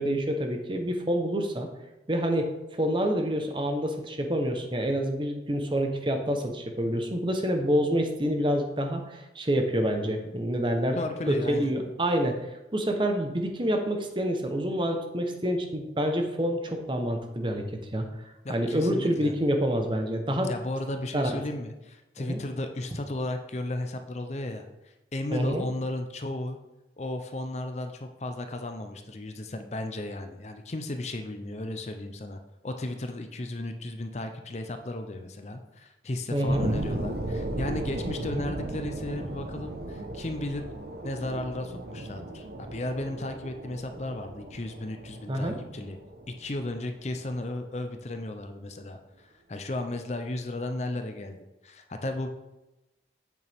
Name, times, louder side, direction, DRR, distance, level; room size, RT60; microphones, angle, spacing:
voice 1, 0.0-1.7 2.1-11.0 11.3-12.3 12.7-17.6 17.9-18.0 18.5-20.5 21.1-21.3 22.2-22.4 25.3-25.7 36.3-36.7 45.3-45.6, equal, 25° right, 4 dB, 0.9 m, -27 dB
voice 2, 10.9-11.7 18.4-19.3 20.4-26.6 27.0-40.7 41.0-46.0 46.3-51.4 51.6-52.3, left 1 dB, 40° left, 6 dB, 0.6 m, -35 dB
sound 1, 36.5-47.5 48.0-48.1, right 1 dB, 60° right, 1.0 m, -36 dB
8.4 x 6.6 x 3.5 m, 1.0 s
head